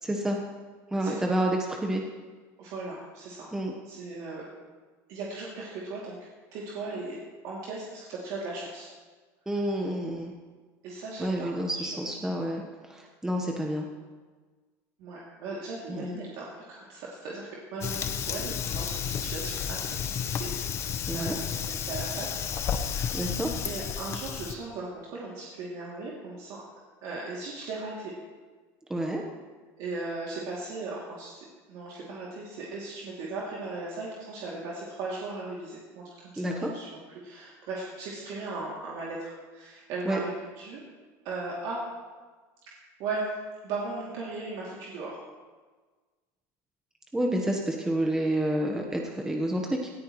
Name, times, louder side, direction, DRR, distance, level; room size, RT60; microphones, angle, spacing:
voice 1, 0.0-0.4 0.9-2.0 3.5-3.7 9.5-10.3 11.2-13.9 15.9-16.2 21.1-21.4 23.1-23.5 28.9-29.2 36.4-36.7 40.1-40.2 47.1-49.9, right 1 dB, 5° right, 1 dB, 1.1 m, -29 dB
voice 2, 1.0-1.3 2.6-3.5 3.8-4.5 5.1-6.2 6.5-7.2 7.4-8.9 10.8-11.9 15.0-20.5 21.1-23.3 23.6-26.6 27.0-28.1 29.8-40.3 40.6-40.8 41.2-41.8 43.0-43.3 43.6-45.2, right 3 dB, 65° right, -5 dB, 2.7 m, -37 dB
Fire, 17.8-24.5, left 8 dB, 35° left, 0.9 m, -32 dB
18.5 x 13.5 x 3.1 m, 1.4 s
cardioid pair, 135°, 8 cm